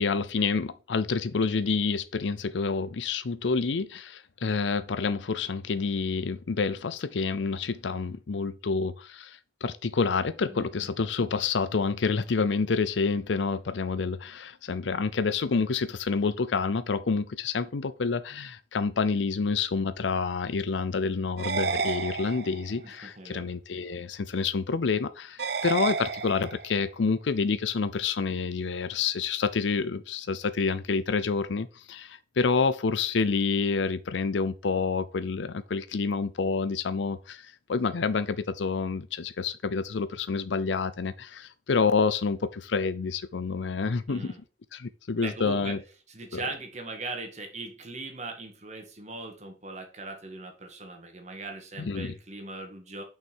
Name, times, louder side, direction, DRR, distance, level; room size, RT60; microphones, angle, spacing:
voice 1, 0.0-44.3 44.7-45.8 46.3-46.4 51.8-52.1, left 4 dB, 85° left, 0.5 m, -28 dB
voice 2, 10.5-11.0 22.8-23.5 44.1-44.4 45.2-45.8 46.1-53.0, right 3 dB, 40° right, 1.9 m, -40 dB
sound 1, 21.4-22.8 25.4-26.8, right 5 dB, 60° right, 0.6 m, -31 dB
6.3 x 5.7 x 4.5 m
head